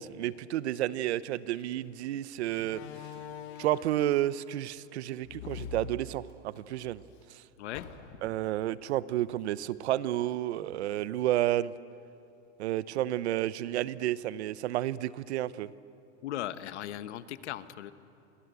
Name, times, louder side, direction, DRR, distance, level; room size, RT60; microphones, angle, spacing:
voice 1, 0.0-2.8 3.6-7.0 8.2-11.7 12.6-15.7, right 13 dB, 65° right, 18 dB, 0.8 m, -31 dB
Slam, 1.5-1.7 2.6-4.2 5.2-6.6 7.0-7.1 7.7-8.4, left 6 dB, 45° left, 2.4 m, -44 dB
voice 2, 5.4-5.7 7.6-7.9 16.2-17.9, left 12 dB, 65° left, 13 dB, 1.2 m, -38 dB
29.5 x 24.0 x 8.2 m, 2.7 s
supercardioid pair, 180°, 37 cm